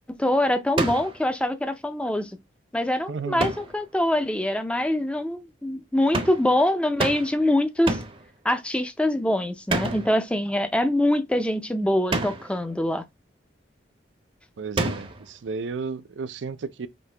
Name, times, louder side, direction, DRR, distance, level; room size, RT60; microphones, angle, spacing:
voice 1, 0.2-2.3 2.7-8.0 8.4-13.0, left 1 dB, 5° left, 0.5 m, -24 dB
sound 1, 0.8-1.2 3.4-3.8 6.1-6.5 7.0-7.4 7.9-8.3 9.7-10.2 12.1-12.6 14.8-15.3, right 2 dB, 30° right, 0.7 m, -28 dB
voice 2, 3.1-3.5 14.6-16.9, right 4 dB, 85° right, 0.5 m, -33 dB
5.2 x 2.7 x 3.3 m
head